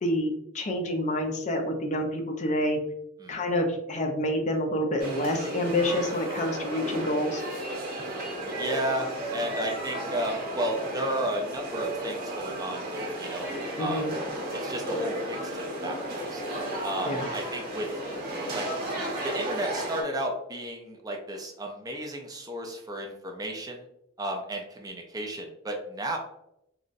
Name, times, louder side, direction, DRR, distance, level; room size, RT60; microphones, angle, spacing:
voice 1, 0.0-2.8 3.3-7.4 13.8-14.1 17.0-17.3, left 1 dB, 35° left, 3 dB, 0.5 m, -28 dB
sound 1, 5.0-20.0, right 1 dB, 45° right, 0.8 m, -34 dB
voice 2, 8.4-13.5 13.8-14.1 14.6-16.4 16.8-17.9 18.5-18.7 19.2-23.8 24.2-26.2, right 1 dB, 20° right, 1 dB, 0.4 m, -33 dB
3.8 x 2.0 x 2.5 m, 0.82 s
head